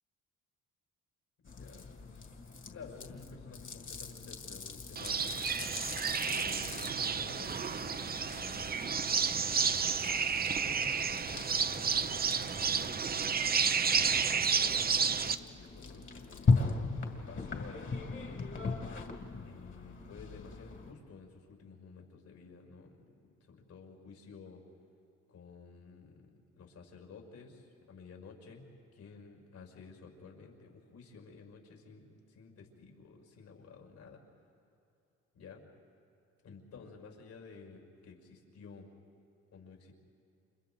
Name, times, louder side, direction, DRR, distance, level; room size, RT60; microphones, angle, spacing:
voice 1, 1.4-2.0 2.4-5.4 6.2-12.8 13.8-16.8 17.3-18.5 19.4-24.6 25.3-34.2 35.3-35.6 36.4-38.9 39.5-39.9, left 4 dB, 70° left, 0 dB, 5.9 m, -53 dB
sound 1, 1.5-20.9, left 4 dB, 40° left, 2.3 m, -39 dB
sound 2, 5.0-15.4, right 6 dB, 30° right, 0.7 m, -31 dB
30.0 x 27.5 x 3.9 m, 2.6 s
cardioid pair, 90°, 30 cm